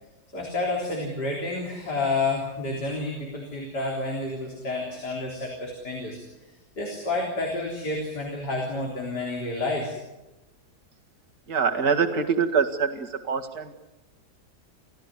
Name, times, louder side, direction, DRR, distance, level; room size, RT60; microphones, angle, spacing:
voice 1, 0.3-6.2 6.8-9.9, left 2 dB, 80° left, 0 dB, 4.3 m, -29 dB
voice 2, 11.5-13.7, right 6 dB, 70° right, 5 dB, 2.5 m, -24 dB
29.5 x 15.0 x 9.8 m, 1.0 s
omnidirectional pair, 1.8 m